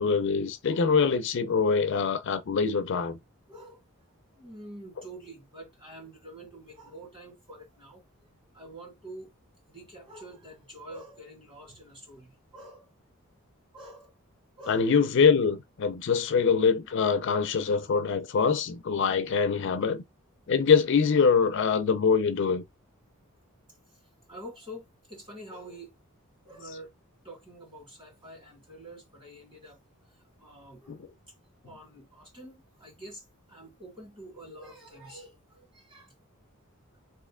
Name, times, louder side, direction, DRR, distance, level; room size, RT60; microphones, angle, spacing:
voice 1, 0.0-3.2 14.7-20.0 20.5-22.6 30.9-31.0, left 5 dB, 55° left, 0.4 m, -24 dB
voice 2, 3.5-3.8 4.4-8.0 8.5-9.3 9.7-12.9 13.7-14.1 14.6-14.9 18.4-18.6 19.8-19.9 24.3-25.9 26.4-26.9 27.2-31.0 31.6-36.1, right 1 dB, 20° right, 1.9 m, -47 dB
3.2 x 2.7 x 3.6 m
head